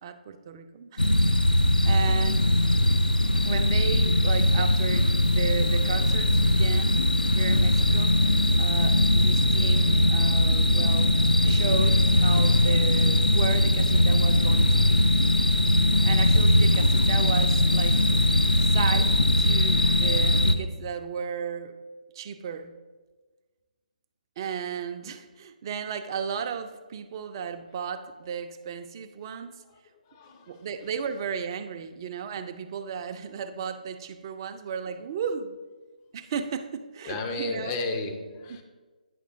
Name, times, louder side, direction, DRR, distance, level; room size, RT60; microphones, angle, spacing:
voice 1, 0.0-2.5 3.4-7.0 7.3-8.2 8.6-11.1 11.4-15.1 16.0-18.0 18.6-21.7 22.1-22.7 24.4-29.5 30.5-35.6 36.1-37.7 38.5-38.6, right 6 dB, 30° right, 8 dB, 0.4 m, -34 dB
sound 1, 1.0-20.6, left 1 dB, 85° left, 0.5 m, -21 dB
voice 2, 30.1-30.9 37.0-38.6, left 2 dB, 25° left, 4 dB, 0.6 m, -33 dB
9.2 x 6.4 x 2.6 m, 1.3 s
figure-of-eight pair, 140°, 5 cm